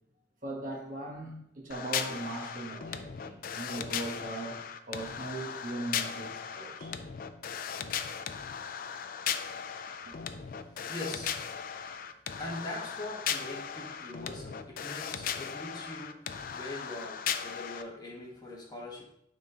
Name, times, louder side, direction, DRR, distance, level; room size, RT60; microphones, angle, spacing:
voice 1, 0.4-6.9, right 2 dB, 45° right, 0 dB, 1.1 m, -39 dB
sound 1, 1.7-17.8, left 8 dB, 50° left, 0.4 m, -37 dB
voice 2, 10.5-11.4 11.7-11.8 12.4-19.0, left 1 dB, 20° left, -2 dB, 1.2 m, -42 dB
9.6 x 3.7 x 2.8 m, 0.75 s
head